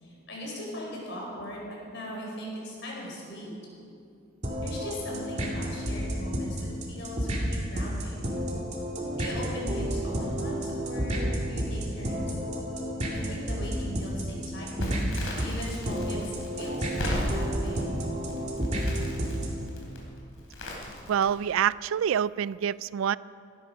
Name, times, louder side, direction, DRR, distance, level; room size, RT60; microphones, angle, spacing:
voice 1, 0.0-3.5 4.6-8.2 9.1-12.3 13.1-15.0 15.4-17.8, equal, 55° left, -3 dB, 4.9 m, -39 dB
sound 1, 4.4-19.7, equal, 30° right, 2.3 m, -31 dB
Crackle, 14.8-21.6, left 1 dB, 75° left, 3.6 m, -36 dB
voice 2, 21.1-23.2, right 8 dB, 70° right, 19 dB, 0.3 m, -26 dB
16.5 x 13.5 x 5.5 m, 2.5 s
head